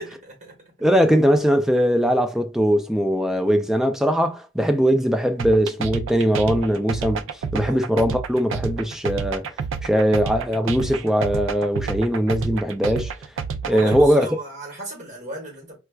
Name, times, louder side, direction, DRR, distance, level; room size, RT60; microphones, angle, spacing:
voice 1, 0.0-0.7 7.6-7.8 13.7-15.8, right 1 dB, 40° right, 1.6 m, -35 dB
voice 2, 0.8-7.2 7.5-9.4 9.8-13.1 13.7-14.3, equal, ahead, 0.3 m, -20 dB
sound 1, 5.4-14.1, right 6 dB, 80° right, 0.3 m, -29 dB
4.3 x 2.3 x 2.2 m
head